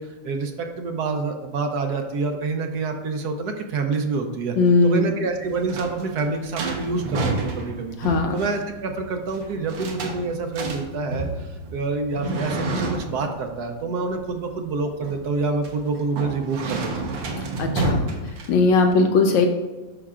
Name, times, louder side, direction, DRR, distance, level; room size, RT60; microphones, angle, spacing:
voice 1, 0.0-4.6 4.8-8.0 8.3-17.1, right 4 dB, 65° right, 5 dB, 1.1 m, -27 dB
voice 2, 4.6-5.1 8.0-8.3 17.6-18.0 18.5-19.5, left 3 dB, 80° left, 4 dB, 1.3 m, -18 dB
sound 1, 5.3-18.9, right 3 dB, 85° right, 1.7 m, -30 dB
9.9 x 5.9 x 2.4 m, 1.2 s
omnidirectional pair, 2.0 m